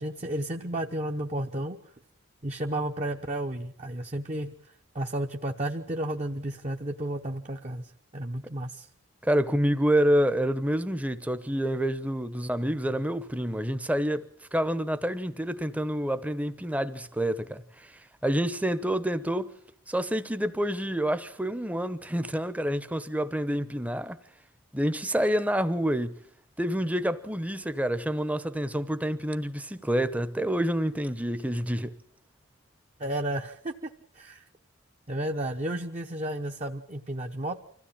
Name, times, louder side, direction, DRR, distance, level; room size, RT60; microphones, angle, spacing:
voice 1, 0.0-1.8 2.4-4.5 4.9-8.9 33.0-33.9 34.1-34.4 35.1-37.6, right 1 dB, 30° right, 0.9 m, -32 dB
voice 2, 9.2-17.9 18.2-19.5 19.9-24.2 24.7-26.2 26.6-32.0, equal, 5° right, 0.9 m, -28 dB
25.5 x 15.5 x 8.7 m
head